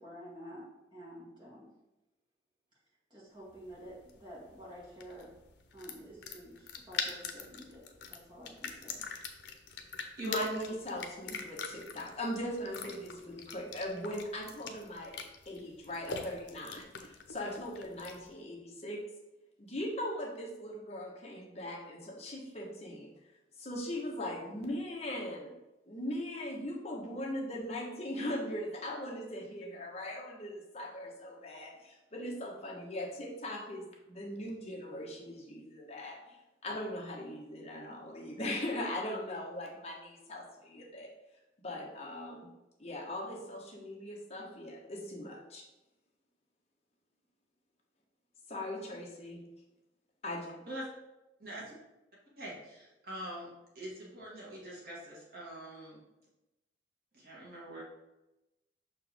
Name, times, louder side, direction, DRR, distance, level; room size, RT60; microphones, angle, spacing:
voice 1, 0.0-1.7 3.1-5.3 5.7-9.1, equal, 25° right, -5 dB, 2.0 m, -50 dB
sound 1, 3.5-18.3, left 5 dB, 80° left, 0.7 m, -44 dB
voice 2, 10.2-15.1 15.4-19.0 19.6-23.1 23.6-25.5 25.9-41.1 41.6-42.5 42.8-45.6 48.5-49.4 50.2-50.5, left 1 dB, 35° left, -1 dB, 1.2 m, -40 dB
voice 3, 51.4-51.8 52.4-53.5 53.8-56.0 57.1-57.8, right 1 dB, 60° right, -5 dB, 2.1 m, -42 dB
6.1 x 4.5 x 3.5 m, 0.98 s
head